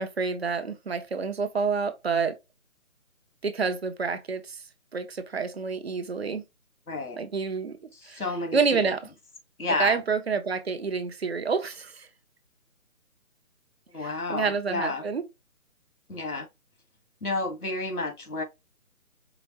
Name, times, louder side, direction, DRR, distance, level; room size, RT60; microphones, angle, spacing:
voice 1, 0.0-2.3 3.4-4.6 4.9-6.4 7.2-7.8 8.1-8.2 8.5-9.0 9.8-12.1 14.0-15.2, right 5 dB, 45° right, 0.8 m, -28 dB
voice 2, 6.9-7.2 7.9-8.9 9.6-10.0 13.9-15.0 16.1-16.5 17.2-18.4, left 3 dB, 85° left, 1.8 m, -31 dB
5.0 x 2.4 x 3.0 m
figure-of-eight pair, 155°, 43 cm